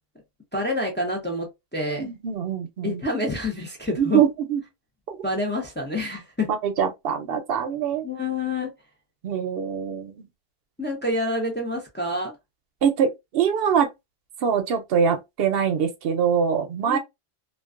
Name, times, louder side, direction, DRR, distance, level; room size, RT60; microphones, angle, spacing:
voice 1, 0.5-1.5 1.7-2.1 2.8-4.2 5.2-6.5 8.0-8.7 10.8-12.3 16.8-17.0, left 2 dB, 15° left, 0.5 m, -27 dB
voice 2, 2.0-3.0 4.0-4.6 5.1-5.2 6.5-8.0 9.2-10.3 12.8-13.9 14.4-17.0, right 7 dB, 65° right, 0.8 m, -23 dB
2.3 x 2.2 x 2.3 m
omnidirectional pair, 1.1 m